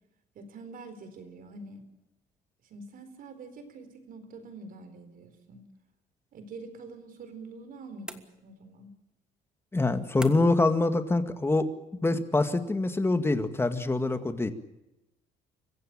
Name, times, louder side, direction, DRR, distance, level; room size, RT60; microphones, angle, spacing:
voice 1, 0.3-1.9 2.6-5.6 6.3-8.9, right 3 dB, 55° right, 9 dB, 4.2 m, -46 dB
sound 1, 8.1-8.8 10.2-10.7, right 1 dB, 5° right, 1.6 m, -44 dB
voice 2, 9.7-11.7 12.0-14.5, left 2 dB, 15° left, 9 dB, 1.9 m, -25 dB
25.0 x 15.5 x 8.8 m, 0.93 s
cardioid pair, 110°, 17 cm